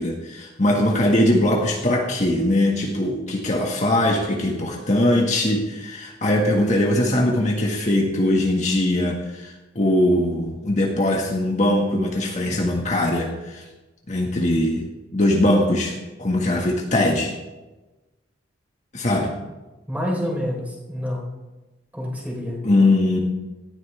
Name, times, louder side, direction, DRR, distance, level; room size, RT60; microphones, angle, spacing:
voice 1, 0.0-13.6 14.1-17.4 18.9-19.3 22.6-23.2, left 1 dB, 40° left, -1 dB, 1.7 m, -21 dB
voice 2, 19.9-21.3 21.9-22.6, equal, 10° right, -2 dB, 4.0 m, -27 dB
18.0 x 14.0 x 3.4 m, 1.1 s
head